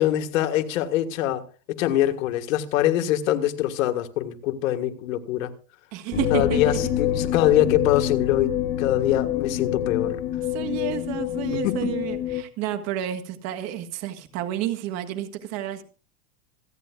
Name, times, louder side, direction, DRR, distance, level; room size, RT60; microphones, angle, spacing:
voice 1, 0.0-1.4 1.8-5.5 6.3-10.2 11.6-11.9, left 12 dB, 65° left, 1.7 m, -23 dB
voice 2, 5.9-6.8 10.5-15.8, right 11 dB, 35° right, 1.6 m, -30 dB
sound 1, 6.1-12.4, left 11 dB, 25° left, 1.0 m, -27 dB
27.0 x 9.2 x 2.3 m
supercardioid pair, 160°, 43 cm